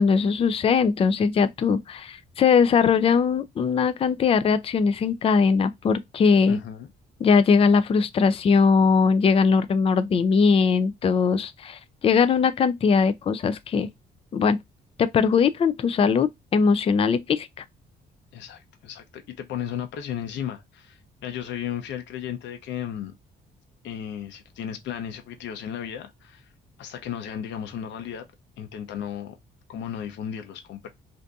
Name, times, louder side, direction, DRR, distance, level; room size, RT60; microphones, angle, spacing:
voice 1, 0.0-6.6 7.2-13.9 14.3-14.6 15.0-17.5, left 5 dB, 30° left, 0.4 m, -20 dB
voice 2, 6.5-6.9 18.3-23.1 23.8-26.5 26.8-28.3 28.6-29.4 29.7-30.9, left 9 dB, 85° left, 0.7 m, -34 dB
2.6 x 2.6 x 3.4 m
cardioid pair, 135°, 18 cm